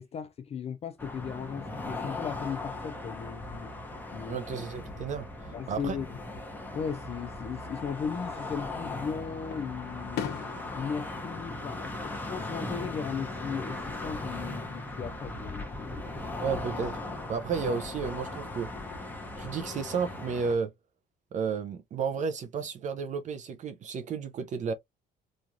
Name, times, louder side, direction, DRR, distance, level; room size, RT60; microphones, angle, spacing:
voice 1, 0.0-3.7 4.1-4.4 5.5-6.1 6.7-10.4 10.7-16.2, left 7 dB, 35° left, 0.4 m, -37 dB
sound 1, 1.0-20.5, left 2 dB, 10° left, 0.9 m, -38 dB
voice 2, 4.3-6.0 16.4-17.0 17.3-18.7 19.4-20.7 21.3-24.7, right 6 dB, 45° right, 0.5 m, -32 dB
Fireworks, 8.9-9.0 9.5-12.6 12.9-13.5 15.0-15.9, left 9 dB, 75° left, 0.7 m, -42 dB
3.1 x 2.3 x 2.5 m
cardioid pair, 110°, 17 cm